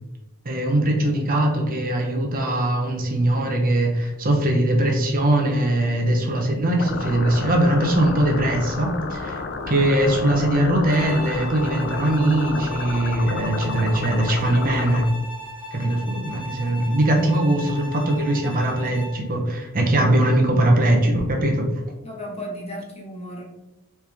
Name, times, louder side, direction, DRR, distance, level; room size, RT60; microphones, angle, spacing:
voice 1, 0.4-9.4 9.7-15.1 15.7-21.7, right 1 dB, 40° right, 1 dB, 0.8 m, -21 dB
sound 1, 6.8-15.0, left 4 dB, 50° left, 0.4 m, -31 dB
Bowed string instrument, 10.9-19.3, left 2 dB, 10° right, 1.4 m, -37 dB
voice 2, 15.8-16.3 22.0-23.4, equal, 30° left, -1 dB, 1.0 m, -36 dB
4.4 x 3.1 x 3.4 m, 0.98 s
head